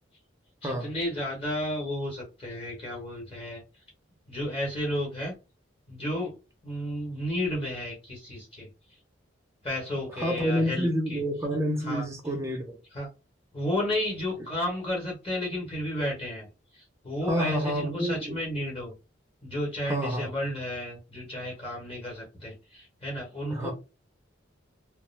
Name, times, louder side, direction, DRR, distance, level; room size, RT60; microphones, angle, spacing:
voice 1, 0.6-3.6 4.3-5.3 5.9-6.3 6.6-8.7 9.6-11.2 11.8-12.1 12.9-13.1 13.5-16.5 16.7-18.9 19.4-23.7, left 1 dB, 30° left, 1.0 m, -32 dB
voice 2, 10.1-12.8 17.3-18.4 19.9-20.3 23.5-23.7, equal, 15° right, 0.5 m, -28 dB
2.3 x 2.1 x 3.2 m
head